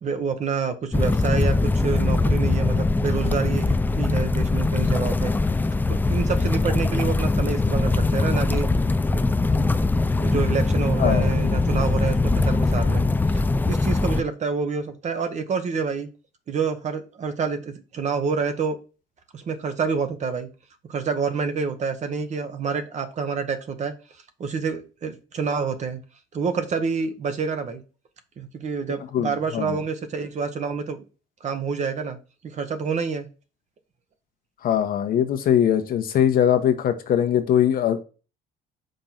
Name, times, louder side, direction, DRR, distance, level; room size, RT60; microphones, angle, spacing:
voice 1, 0.0-5.4 5.9-8.7 9.1-9.2 9.6-9.8 10.2-13.1 13.3-16.1 16.5-18.8 19.3-20.5 20.9-23.9 24.4-26.0 26.3-27.8 28.4-31.0 31.4-32.2 32.4-33.3, right 5 dB, 45° right, 1.1 m, -28 dB
sound 1, 0.9-14.2, left 3 dB, 10° left, 0.4 m, -22 dB
voice 2, 11.0-11.3 29.1-29.8 34.6-38.0, left 9 dB, 60° left, 1.1 m, -21 dB
5.2 x 3.8 x 5.8 m
cardioid pair, 110°, 17 cm